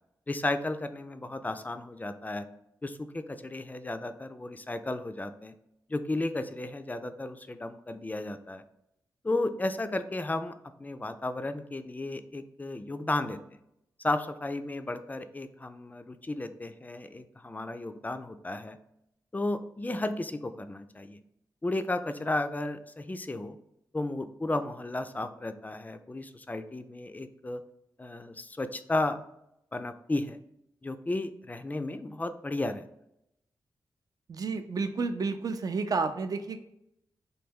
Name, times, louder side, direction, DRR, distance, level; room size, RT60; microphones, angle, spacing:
voice 1, 0.3-2.5 2.8-5.5 5.9-8.6 9.2-10.5 10.8-13.4 14.0-18.8 19.3-21.2 21.6-23.6 23.9-27.6 28.0-29.2 29.7-30.4 30.8-32.9, left 2 dB, 20° left, 9 dB, 0.3 m, -33 dB
voice 2, 34.3-36.6, right 4 dB, 50° right, 8 dB, 0.4 m, -31 dB
3.2 x 2.2 x 3.5 m, 0.80 s
cardioid pair, 65°, 8 cm